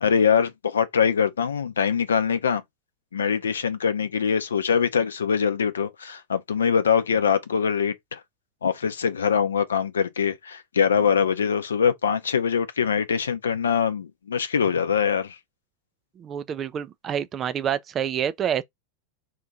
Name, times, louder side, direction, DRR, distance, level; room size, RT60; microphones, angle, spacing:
voice 1, 0.0-2.6 3.1-8.2 8.6-15.4, left 7 dB, 70° left, 0.6 m, -23 dB
voice 2, 16.2-18.6, right 9 dB, 25° right, 0.4 m, -27 dB
2.9 x 2.6 x 3.6 m
figure-of-eight pair, 90°, 0 cm